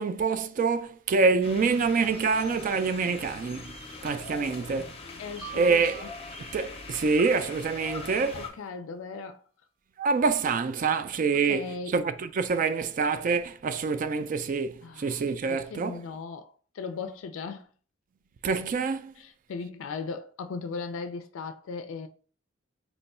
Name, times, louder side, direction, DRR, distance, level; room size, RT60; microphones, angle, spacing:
voice 1, 0.0-3.8 4.0-4.9 5.5-6.1 6.5-8.5 10.0-16.0 18.4-19.2, right 4 dB, 45° right, 0.3 m, -26 dB
sound 1, 1.4-8.5, left 4 dB, 30° left, 0.6 m, -42 dB
voice 2, 4.3-4.9 5.2-5.7 6.0-6.1 8.3-9.4 11.3-12.0 14.8-15.2 15.5-17.7 19.2-22.1, left 4 dB, 85° left, 0.4 m, -38 dB
sound 2, 5.4-7.5, right 9 dB, 85° right, 0.8 m, -46 dB
2.9 x 2.2 x 4.1 m
head